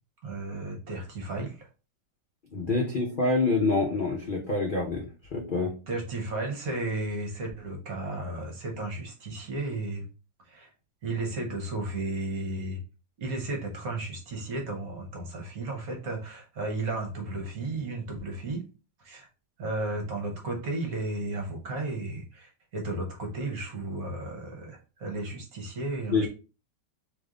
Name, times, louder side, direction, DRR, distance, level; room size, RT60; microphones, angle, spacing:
voice 1, 0.2-1.7 5.9-10.1 10.5-10.7 11.0-12.8 13.2-18.6 19.0-19.3 19.6-26.3, right 2 dB, 55° right, 1 dB, 1.4 m, -34 dB
voice 2, 2.5-5.7 26.1-26.3, left 3 dB, 60° left, 0 dB, 0.5 m, -26 dB
3.5 x 3.1 x 3.7 m, 0.34 s
omnidirectional pair, 2.0 m